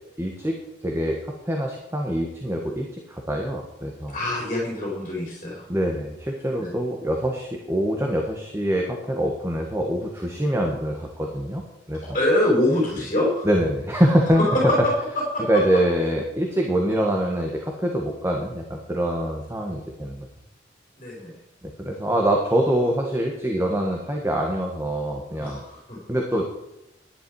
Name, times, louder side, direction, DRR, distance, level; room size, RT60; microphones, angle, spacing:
voice 1, 0.2-0.6 0.8-1.2 1.4-4.2 5.7-12.1 13.4-14.7 15.5-20.3 21.6-25.6 26.1-26.5, right 1 dB, 15° right, 1 dB, 1.4 m, -24 dB
voice 2, 4.1-5.6 6.6-6.7 12.0-13.5 14.4-14.8 15.3-15.4 21.0-21.3 25.4-26.0, left 1 dB, 35° left, -4 dB, 4.3 m, -24 dB
11.5 x 10.5 x 4.7 m, 0.92 s
head